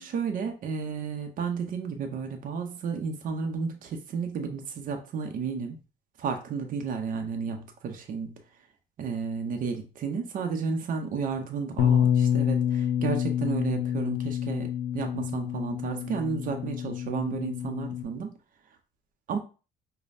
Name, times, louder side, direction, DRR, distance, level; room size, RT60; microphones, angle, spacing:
voice 1, 0.0-5.8 6.2-8.4 9.0-18.3 19.3-19.4, right 5 dB, 55° right, 5 dB, 0.7 m, -32 dB
Bass guitar, 11.8-18.0, left 9 dB, 90° left, 0.6 m, -27 dB
5.1 x 2.2 x 2.6 m, 0.35 s
cardioid pair, 110°, 17 cm